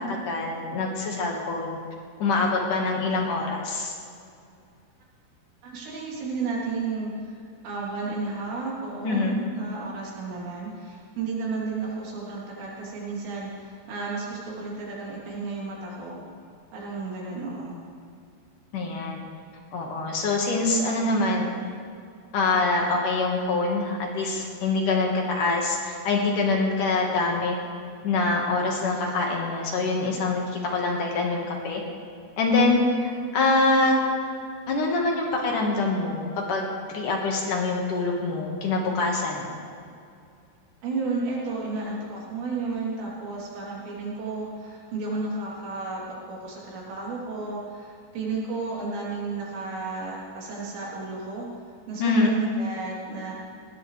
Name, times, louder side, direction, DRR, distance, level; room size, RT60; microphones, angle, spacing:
voice 1, 0.0-1.8 2.2-3.9 9.0-9.5 18.7-19.2 19.7-21.5 22.3-27.6 28.0-31.8 32.4-32.8 33.3-33.9 34.7-36.7 36.9-39.5 52.0-52.3, left 3 dB, 55° left, 0 dB, 2.9 m, -25 dB
voice 2, 5.6-7.4 7.6-16.2 16.7-17.8 40.8-51.5 51.9-53.3, right 3 dB, 75° right, -5 dB, 5.7 m, -32 dB
20.0 x 19.0 x 3.4 m, 2.4 s
omnidirectional pair, 5.0 m